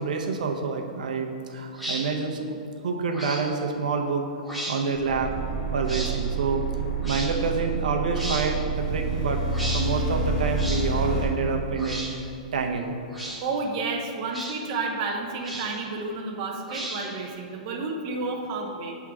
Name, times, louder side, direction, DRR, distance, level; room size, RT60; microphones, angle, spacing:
voice 1, 0.0-2.6 2.8-4.2 4.7-5.4 5.7-6.6 7.0-9.4 9.7-12.2 12.5-12.9, right 4 dB, 75° right, 3 dB, 0.7 m, -27 dB
sound 1, 1.7-2.0 3.1-3.4 4.4-4.8 5.9-6.1 7.0-7.3 8.1-8.5 9.5-9.8 10.6-10.8 11.8-12.1 13.1-13.4 14.3-14.5 15.4-15.8 16.7-17.2, right 1 dB, ahead, 0.9 m, -34 dB
sound 2, 4.9-11.3, right 3 dB, 25° left, 1.1 m, -28 dB
voice 2, 13.4-19.0, right 3 dB, 30° right, 1 dB, 0.5 m, -31 dB
7.3 x 3.6 x 4.7 m, 2.5 s
hypercardioid pair, 170°, 4 cm